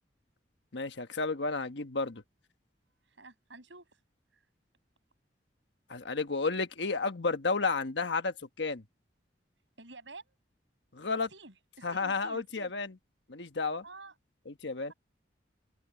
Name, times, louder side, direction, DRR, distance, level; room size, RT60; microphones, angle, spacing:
voice 1, 0.7-2.2 5.9-8.8 10.9-11.3 11.8-12.9 13.3-13.8 14.5-14.9, left 4 dB, 75° left, 1.3 m, -32 dB
voice 2, 3.1-3.9 4.3-4.4 9.8-10.4 11.3-12.7 13.8-14.2, right 3 dB, 85° right, 7.3 m, -50 dB
open air
head